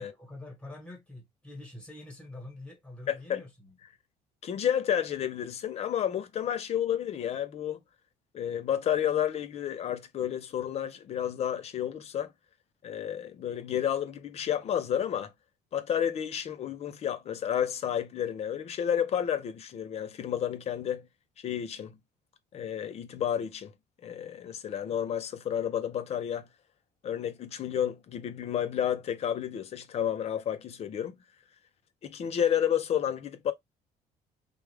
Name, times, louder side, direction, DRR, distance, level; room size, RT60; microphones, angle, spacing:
voice 1, 0.0-3.7, left 2 dB, 5° left, 1.2 m, -45 dB
voice 2, 3.1-3.4 4.4-7.8 8.3-12.3 12.8-15.3 15.7-21.1 21.4-22.0 22.5-23.7 24.0-26.5 27.0-31.2 32.0-33.5, left 9 dB, 40° left, 0.6 m, -31 dB
3.4 x 2.4 x 3.3 m
cardioid pair, 155°, 16 cm